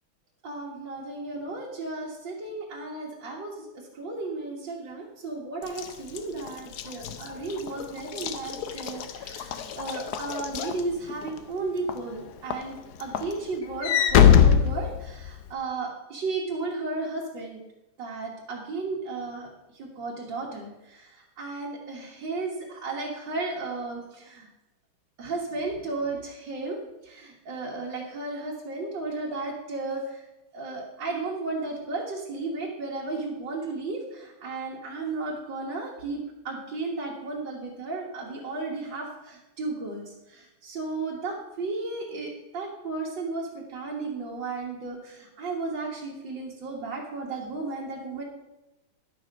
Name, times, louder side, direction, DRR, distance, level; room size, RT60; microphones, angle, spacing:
voice 1, 0.4-17.6 18.0-19.5 19.8-24.5 25.2-30.2 30.5-48.2, right 3 dB, 70° right, -4 dB, 2.2 m, -34 dB
Walk footsteps / Slam, 5.7-11.4 11.9-12.2 12.5-15.5, left 8 dB, 65° left, 1.1 m, -23 dB
11.5 x 6.8 x 5.2 m, 0.98 s
omnidirectional pair, 2.1 m